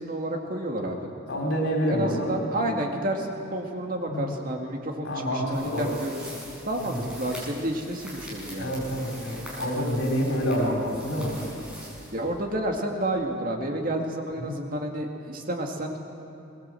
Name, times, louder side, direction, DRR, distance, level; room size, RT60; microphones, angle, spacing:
voice 1, 0.0-1.1 1.9-8.7 12.1-16.0, right 1 dB, 45° right, 1 dB, 2.2 m, -30 dB
voice 2, 1.3-2.4 4.1-4.3 5.0-5.9 6.8-7.0 8.6-11.3 14.4-14.6, equal, 85° left, 0 dB, 3.9 m, -27 dB
sound 1, 5.5-12.7, equal, 5° right, 6.1 m, -43 dB
22.5 x 19.0 x 7.8 m, 2.9 s
head